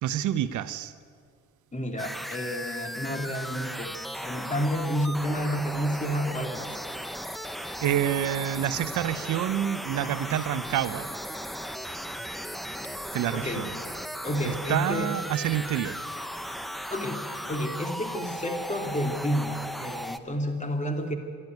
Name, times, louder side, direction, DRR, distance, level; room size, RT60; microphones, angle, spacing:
voice 1, 0.0-0.9 7.8-11.1 13.1-13.7 14.4-16.0, right 11 dB, 75° right, 13 dB, 0.9 m, -28 dB
voice 2, 1.7-4.0 4.2-6.8 10.0-10.3 13.3-13.7 14.2-15.1 16.9-21.1, equal, 25° left, 5 dB, 2.7 m, -30 dB
sound 1, 2.0-20.2, equal, ahead, 1.0 m, -36 dB
24.0 x 12.0 x 9.4 m, 2.2 s
cardioid pair, 90°, 30 cm